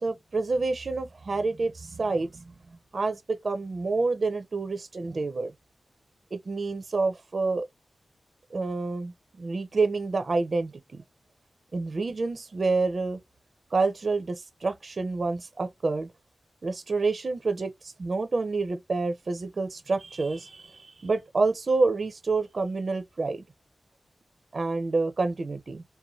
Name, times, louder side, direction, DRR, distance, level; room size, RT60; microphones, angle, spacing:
voice 1, 0.0-2.4 2.9-5.5 6.3-7.7 8.5-9.1 9.4-11.0 11.7-13.2 13.7-16.1 16.6-23.4 24.5-25.8, right 3 dB, 55° right, 0.4 m, -28 dB
2.6 x 2.1 x 2.9 m
wide cardioid pair, 75°, 0 cm